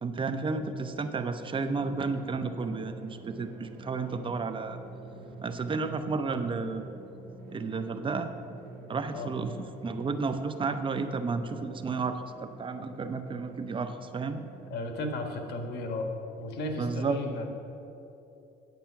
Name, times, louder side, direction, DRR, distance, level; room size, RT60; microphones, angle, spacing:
voice 1, 0.0-4.8 5.4-6.8 7.5-8.3 8.9-14.4 16.8-17.2, right 4 dB, 30° right, 9 dB, 0.6 m, -32 dB
Drum, 1.7-14.7, right 2 dB, 65° right, 1.7 m, -47 dB
voice 2, 14.7-16.1 16.4-17.5, left 2 dB, 75° left, 4 dB, 1.5 m, -34 dB
9.3 x 8.1 x 5.8 m, 2.9 s
cardioid pair, 110°, 17 cm